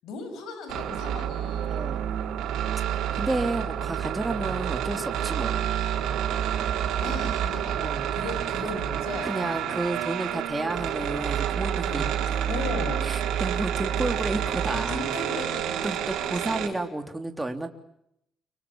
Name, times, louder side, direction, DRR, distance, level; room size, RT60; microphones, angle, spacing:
voice 1, 0.0-1.9 7.0-9.7 11.8-13.0 14.7-16.7, left 4 dB, 85° left, 8 dB, 7.2 m, -37 dB
sound 1, 0.7-16.7, right 10 dB, 90° right, 4.3 m, -29 dB
voice 2, 1.7-2.0 3.1-5.7 7.7-8.1 8.7-8.8 9.2-12.0 13.0-15.1 15.8-17.7, right 2 dB, 15° right, 5 dB, 3.4 m, -31 dB
29.5 x 25.5 x 7.2 m, 0.78 s
cardioid pair, 90°, 0 cm